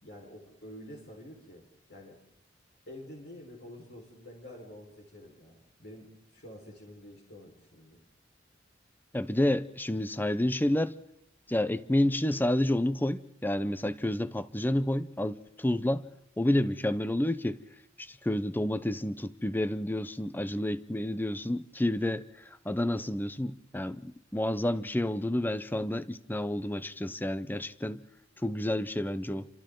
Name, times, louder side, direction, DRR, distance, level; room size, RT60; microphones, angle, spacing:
voice 1, 0.0-2.2 2.9-8.0, left 1 dB, 60° left, 4.8 m, -48 dB
voice 2, 9.1-11.0 11.5-16.0 16.4-17.6 18.0-22.3 22.6-28.0 28.4-29.5, left 1 dB, 10° left, 0.7 m, -29 dB
29.5 x 26.0 x 3.9 m
head